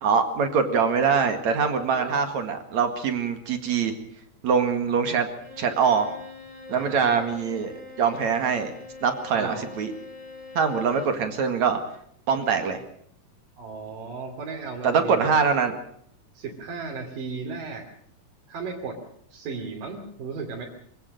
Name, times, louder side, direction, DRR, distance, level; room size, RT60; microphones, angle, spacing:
voice 1, 0.0-3.9 4.4-5.3 5.6-6.1 6.7-7.7 8.0-8.7 9.0-9.9 10.5-11.8 12.3-12.8 14.8-15.8, right 6 dB, 60° right, 7 dB, 3.1 m, -23 dB
Bowed string instrument, 5.3-11.2, left 3 dB, 10° left, 5.7 m, -43 dB
voice 2, 6.7-7.3 9.3-9.6 13.6-15.3 16.3-17.8 18.5-19.0 19.3-20.7, right 4 dB, 80° right, -1 dB, 4.6 m, -35 dB
25.0 x 17.0 x 6.6 m, 0.65 s
omnidirectional pair, 3.8 m